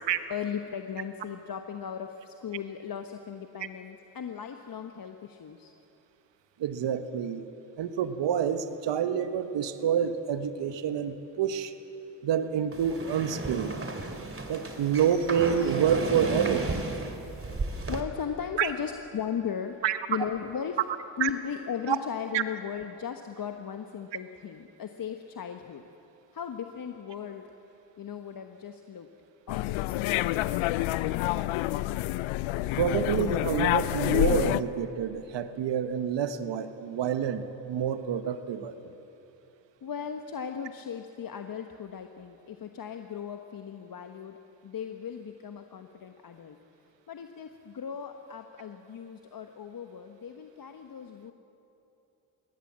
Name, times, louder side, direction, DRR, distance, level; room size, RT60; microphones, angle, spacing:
voice 1, 0.3-5.7 17.6-19.8 20.1-20.8 21.2-25.8 26.3-27.5 28.0-29.1 29.5-30.4 39.8-46.6 47.1-51.3, left 7 dB, 45° left, 6 dB, 1.2 m, -37 dB
voice 2, 6.6-7.4 7.8-11.7 12.2-13.7 14.5-16.7 18.6-18.7 19.8-20.0 21.2-21.3 21.9-22.0 22.3-22.4 32.8-37.4 37.7-38.8, right 8 dB, 60° right, 10 dB, 1.4 m, -28 dB
sound 1, 12.7-18.0, right 3 dB, 25° right, 2.9 m, -34 dB
sound 2, 29.5-34.6, left 17 dB, 70° left, 0.7 m, -27 dB
23.0 x 17.5 x 7.5 m, 3.0 s
hypercardioid pair, 50°, 49 cm